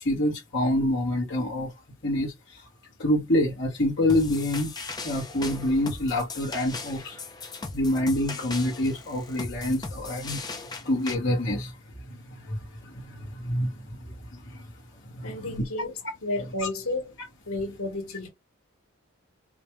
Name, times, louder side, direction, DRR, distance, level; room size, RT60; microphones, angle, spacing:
voice 1, 0.0-1.7 2.0-2.7 3.0-4.7 5.0-7.2 7.7-10.4 10.8-11.7 12.0-14.7 15.0-15.6, left 1 dB, 55° left, 1.3 m, -27 dB
sound 1, 4.1-11.1, left 3 dB, 20° left, 0.6 m, -38 dB
voice 2, 15.2-15.9 16.2-17.1 17.4-18.3, left 2 dB, 85° left, 1.5 m, -32 dB
5.0 x 2.4 x 3.1 m
head